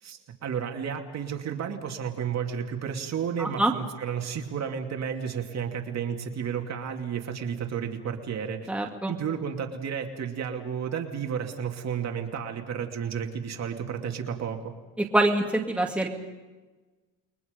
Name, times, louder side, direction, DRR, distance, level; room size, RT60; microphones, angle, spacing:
voice 1, 0.0-8.7 9.1-14.8, right 7 dB, 45° right, 4 dB, 2.6 m, -32 dB
voice 2, 3.4-3.7 8.7-9.1 15.1-16.1, right 1 dB, 5° right, 1 dB, 2.4 m, -24 dB
29.5 x 22.5 x 5.3 m, 1.2 s
cardioid pair, 140°, 37 cm